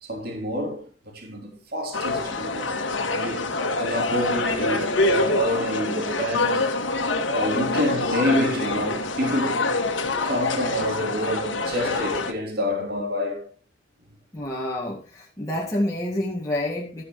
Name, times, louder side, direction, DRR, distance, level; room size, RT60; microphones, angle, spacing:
voice 1, 0.0-2.7 3.0-6.7 7.2-9.7 10.2-13.5 15.4-15.5, equal, 50° right, 3.4 m, -28 dB
sound 1, 1.9-12.3, left 3 dB, 80° left, 2.0 m, -26 dB
voice 2, 14.3-17.0, left 1 dB, 15° left, 1.9 m, -28 dB
13.0 x 10.0 x 3.2 m
head